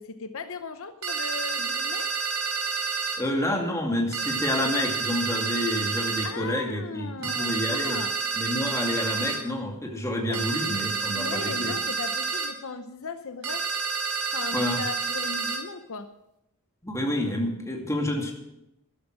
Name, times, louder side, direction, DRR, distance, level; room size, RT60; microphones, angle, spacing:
voice 1, 0.0-2.1 6.2-8.2 10.3-10.4 11.1-13.6 14.3-16.1, left 4 dB, 65° left, 9 dB, 0.8 m, -37 dB
sound 1, 1.0-3.2 4.1-6.3 7.2-9.4 10.3-12.5 13.4-15.6, right 4 dB, 80° right, 2.8 m, -29 dB
voice 2, 3.2-8.0 8.4-11.8 14.5-14.8 16.8-18.3, left 1 dB, 15° left, 1 dB, 2.4 m, -29 dB
13.0 x 12.0 x 6.3 m, 0.86 s
head